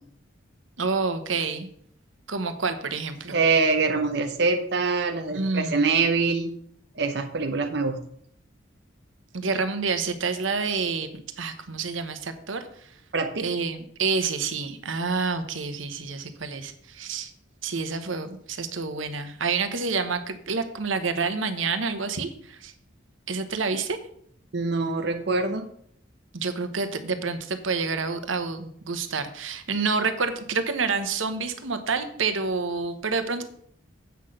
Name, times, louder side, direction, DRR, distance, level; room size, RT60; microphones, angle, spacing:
voice 1, 0.8-1.7 2.3-3.4 5.3-5.9 9.3-11.1 11.4-12.7 13.4-17.3 17.6-22.7 23.3-24.0 26.3-33.4, right 4 dB, 90° right, 9 dB, 1.1 m, -28 dB
voice 2, 3.3-6.5 7.0-8.0 13.1-13.5 24.5-25.7, right 4 dB, 60° right, 5 dB, 0.8 m, -24 dB
8.1 x 5.9 x 6.5 m, 0.65 s
head